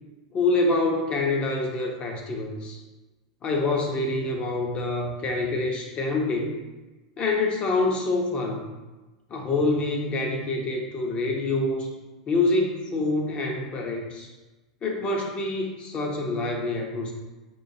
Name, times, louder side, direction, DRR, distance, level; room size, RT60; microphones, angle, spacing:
voice 1, 0.3-2.8 3.4-6.6 7.2-8.7 9.3-11.9 12.3-14.3 14.8-17.1, left 2 dB, 35° left, 1 dB, 0.7 m, -26 dB
4.4 x 2.5 x 2.7 m, 1.2 s
hypercardioid pair, 105°, 3 cm